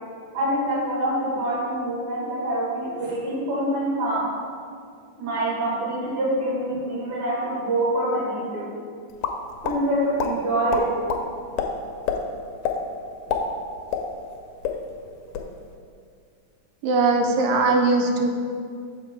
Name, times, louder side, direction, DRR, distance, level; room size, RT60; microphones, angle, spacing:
voice 1, 0.3-4.2 5.2-8.7 9.6-10.8, right 1 dB, 50° right, -7 dB, 2.4 m, -25 dB
sound 1, 9.2-9.8 10.2-10.3 10.7-11.2 11.6-11.7 12.1-12.2 12.6-12.8 13.1-14.4 14.6-14.8 15.2-15.5, left 8 dB, 80° left, 1.7 m, -26 dB
voice 2, 16.8-18.3, right 3 dB, 75° right, 3 dB, 1.7 m, -20 dB
6.6 x 4.2 x 4.5 m, 2.2 s
omnidirectional pair, 3.5 m